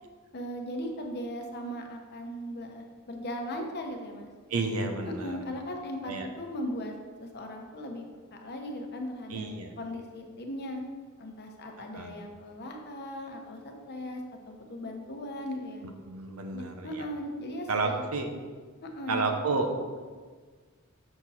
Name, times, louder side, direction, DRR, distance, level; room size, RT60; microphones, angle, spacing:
voice 1, 0.3-4.3 5.2-8.1 8.3-9.5 9.8-10.8 11.2-15.9 16.5-18.2 18.8-19.3, equal, 50° left, 3 dB, 1.0 m, -38 dB
voice 2, 4.5-5.4 6.1-6.3 9.3-9.7 11.9-12.1 16.0-17.0 17.7-18.3 19.1-19.7, right 3 dB, 80° right, 5 dB, 0.9 m, -31 dB
6.8 x 6.1 x 4.2 m, 1.5 s
head